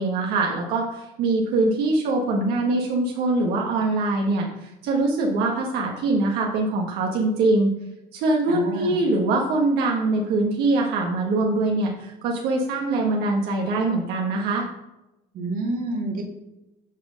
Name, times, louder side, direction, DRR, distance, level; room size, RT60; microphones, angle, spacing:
voice 1, 0.0-7.7 8.1-14.7, right 2 dB, 90° right, 0 dB, 1.4 m, -23 dB
voice 2, 8.5-9.0 15.3-16.2, right 2 dB, 60° right, 2 dB, 1.9 m, -28 dB
8.0 x 4.4 x 6.4 m, 0.97 s
cardioid pair, 130°, 16 cm